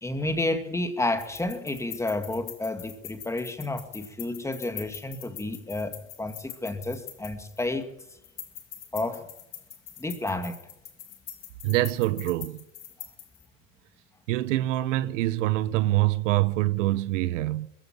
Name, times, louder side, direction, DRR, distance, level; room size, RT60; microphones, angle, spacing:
voice 1, 0.0-7.9 8.9-9.3 10.0-10.6, left 2 dB, 5° left, 2.1 m, -31 dB
sound 1, 1.2-7.8 8.2-13.5, left 11 dB, 35° left, 4.6 m, -43 dB
voice 2, 11.6-12.6 14.3-17.7, right 16 dB, 60° right, 1.1 m, -25 dB
21.0 x 15.5 x 8.8 m
hypercardioid pair, 115°, 40 cm